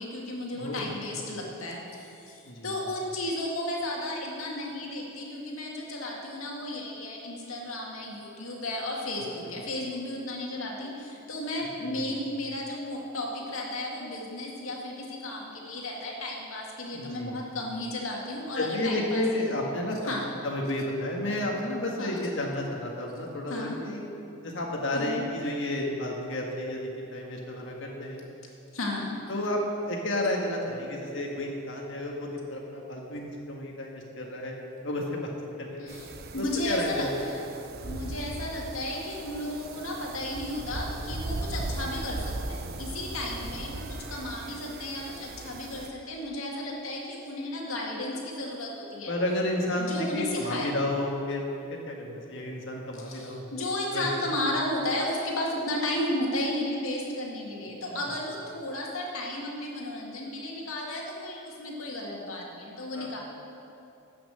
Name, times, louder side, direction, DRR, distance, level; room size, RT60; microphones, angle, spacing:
voice 1, 0.0-19.5 20.1-20.3 22.0-22.3 23.5-23.8 24.9-25.3 28.7-29.1 35.8-37.4 37.8-49.1 49.8-50.7 53.0-63.2, left 1 dB, 80° left, -2 dB, 2.1 m, -34 dB
voice 2, 0.5-0.9 2.4-2.7 11.8-12.1 16.9-17.4 18.5-20.1 20.4-24.0 24.4-28.2 29.3-29.6 29.9-34.5 34.8-35.3 35.6-36.0 36.4-37.1 37.5-37.6 43.4-43.5 49.1-53.4 53.9-54.1 57.9-58.1 62.9-63.2, left 1 dB, 60° left, 0 dB, 1.7 m, -31 dB
sound 1, 35.9-45.9, right 2 dB, 50° right, 0.6 m, -38 dB
12.0 x 6.0 x 7.7 m, 2.8 s
head